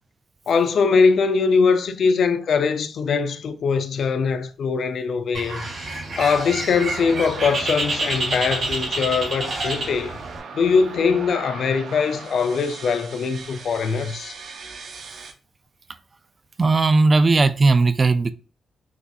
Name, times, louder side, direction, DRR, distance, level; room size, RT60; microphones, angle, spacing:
voice 1, 0.5-5.7 6.2-10.2 10.5-14.4, left 5 dB, 65° left, 0.4 m, -21 dB
Bird, 5.3-10.4, right 2 dB, 55° right, 1.8 m, -28 dB
sound 1, 6.7-15.3, right 5 dB, 75° right, 0.7 m, -38 dB
voice 2, 16.6-18.3, right 3 dB, 30° right, 0.3 m, -17 dB
6.0 x 2.4 x 2.7 m
cardioid pair, 115°, 0 cm